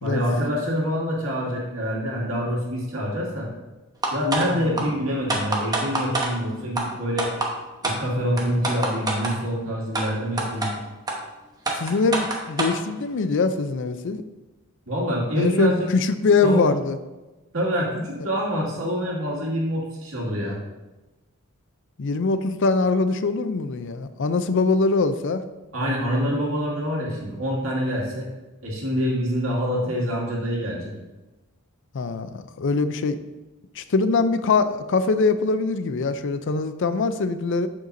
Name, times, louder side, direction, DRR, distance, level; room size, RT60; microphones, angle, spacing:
voice 1, 0.0-3.5 4.1-7.3 7.8-10.7 14.9-15.9 16.4-16.7 17.5-20.6 25.7-28.3 28.6-30.9, equal, 65° right, -3 dB, 2.2 m, -26 dB
sound 1, 4.0-4.5 4.8-4.9 5.3-6.3 6.8-6.9 7.2-7.5 7.8-8.0 8.4-9.3 10.0-10.1 10.4-10.7 11.1-11.2 11.7-12.8, right 2 dB, 15° right, 1.0 m, -25 dB
voice 2, 4.5-4.8 11.7-14.2 15.4-17.0 22.0-25.4 31.9-33.2 33.8-37.7, left 4 dB, 60° left, 11 dB, 0.4 m, -23 dB
8.0 x 6.6 x 2.6 m, 1.1 s
head